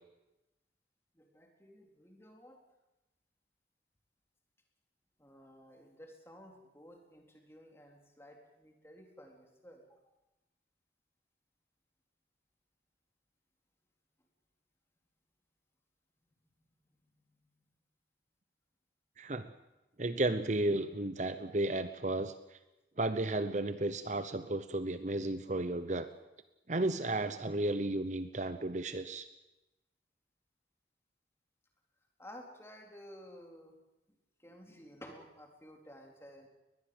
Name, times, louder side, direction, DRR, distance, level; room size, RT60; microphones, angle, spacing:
voice 1, 1.1-2.6 5.2-10.1 17.0-17.6 32.2-33.8 34.4-36.5, equal, 15° left, 2 dB, 3.9 m, -54 dB
voice 2, 19.2-19.5 20.0-22.6 23.0-26.1 26.7-29.3, right 2 dB, 40° right, 11 dB, 0.9 m, -33 dB
22.0 x 20.5 x 7.9 m, 0.97 s
head